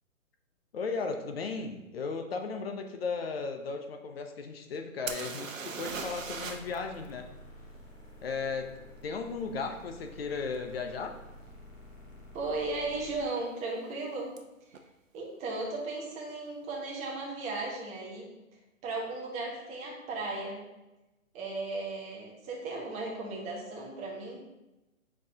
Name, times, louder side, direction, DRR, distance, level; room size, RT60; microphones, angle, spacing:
voice 1, 0.7-7.3 8.2-11.1, left 4 dB, 45° left, 5 dB, 0.7 m, -36 dB
sound 1, 5.1-6.8 7.0-7.1 10.5-10.6 11.3-11.5 11.7-12.3 14.4-14.5 14.7-14.8, right 5 dB, 65° right, 0.8 m, -39 dB
sound 2, 5.8-13.3, left 1 dB, 10° left, 0.5 m, -50 dB
voice 2, 12.3-14.3 15.1-18.3 18.8-20.6 21.3-24.4, right 3 dB, 15° right, -2 dB, 1.1 m, -36 dB
7.2 x 4.7 x 2.8 m, 0.98 s
figure-of-eight pair, 130°, 41 cm